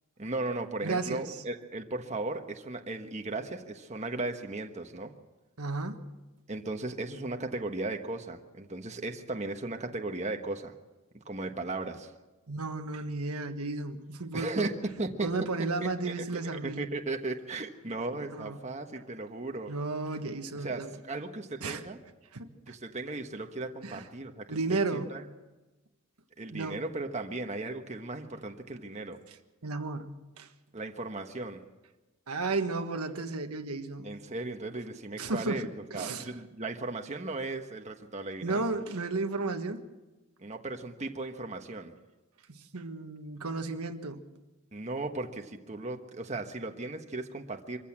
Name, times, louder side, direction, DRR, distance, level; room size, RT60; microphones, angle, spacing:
voice 1, 0.2-5.1 6.5-10.7 11.2-12.1 14.3-14.7 15.0-15.3 15.8-16.1 16.5-19.7 20.6-22.0 22.7-25.2 26.4-29.2 30.7-31.6 34.0-38.6 40.4-41.9 44.7-47.8, right 2 dB, 30° right, 1.2 m, -36 dB
voice 2, 0.8-1.4 5.6-6.1 12.5-14.7 15.2-16.9 18.1-18.6 19.7-21.0 21.6-21.8 22.3-22.7 23.8-24.1 24.5-25.2 26.5-26.8 29.3-29.4 29.6-30.1 30.4-30.5 32.3-34.1 35.2-35.6 35.9-36.3 38.4-39.9 42.5-44.2, right 3 dB, 90° right, 1.4 m, -33 dB
24.5 x 15.0 x 7.4 m
head